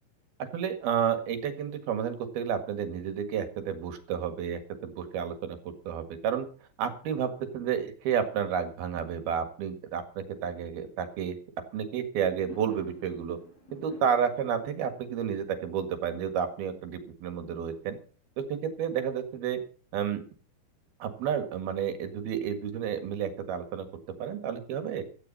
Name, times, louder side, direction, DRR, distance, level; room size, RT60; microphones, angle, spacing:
voice 1, 0.4-6.5 6.8-11.4 11.7-13.4 13.7-18.0 18.4-19.6 19.9-20.2 21.0-23.9 24.2-25.0, right 8 dB, 60° right, 8 dB, 3.2 m, -31 dB
Fireworks, 12.1-17.4, right 1 dB, 45° left, 8.4 m, -52 dB
16.5 x 13.5 x 4.2 m, 0.39 s
omnidirectional pair, 5.8 m